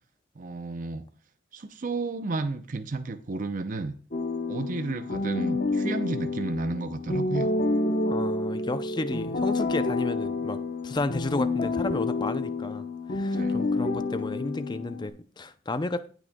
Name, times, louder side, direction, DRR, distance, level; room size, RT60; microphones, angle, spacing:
voice 1, 0.4-1.1 1.5-4.0 4.5-7.5 13.3-13.7, right 3 dB, 45° right, 0.5 m, -32 dB
sound 1, 4.1-15.1, left 2 dB, 45° left, 0.9 m, -29 dB
voice 2, 8.0-16.1, left 2 dB, 25° left, 0.5 m, -32 dB
17.0 x 6.1 x 2.2 m
head